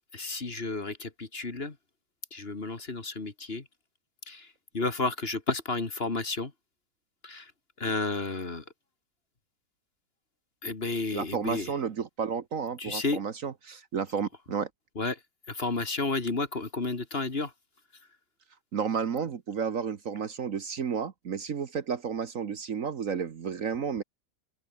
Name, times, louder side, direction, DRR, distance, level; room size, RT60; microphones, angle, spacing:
voice 1, 0.1-1.7 2.3-3.6 4.3-4.5 4.7-6.5 7.2-7.4 7.8-8.6 10.6-11.7 12.8-13.2 15.0-15.2 15.5-17.5, left 3 dB, 35° left, 2.3 m, -31 dB
voice 2, 11.1-14.7 18.7-24.0, right 6 dB, 55° right, 1.5 m, -32 dB
open air
omnidirectional pair, 1.8 m